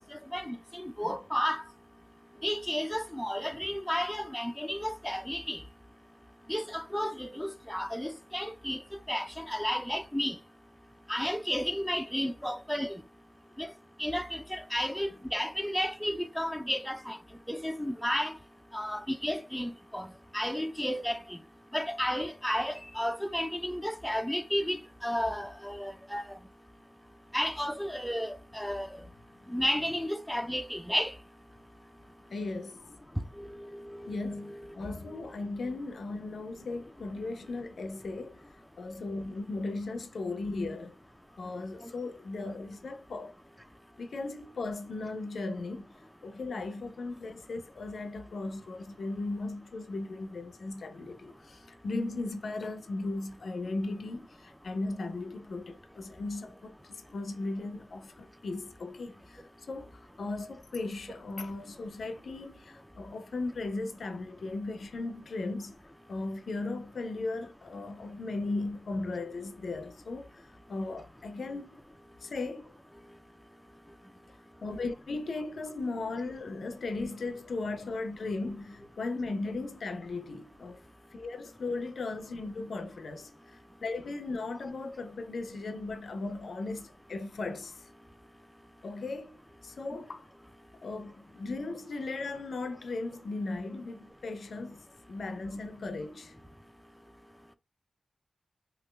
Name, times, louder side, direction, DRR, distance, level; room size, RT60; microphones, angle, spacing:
voice 1, 0.1-1.6 2.4-5.6 6.5-8.8 9.1-10.4 11.1-13.0 13.6-13.7 14.0-17.2 17.5-18.4 18.7-20.1 20.3-21.4 21.7-26.4 27.3-28.9 29.5-31.1 33.4-34.7 41.8-41.9, equal, 5° left, 0.4 m, -33 dB
voice 2, 32.3-32.9 34.1-38.4 38.8-41.0 41.4-43.3 44.0-45.9 46.2-65.7 66.1-71.8 72.2-72.8 74.6-80.8 81.1-83.3 83.8-87.9 88.8-90.3 90.8-96.3, left 3 dB, 85° left, 0.5 m, -37 dB
3.1 x 2.4 x 3.2 m
cardioid pair, 55°, 0 cm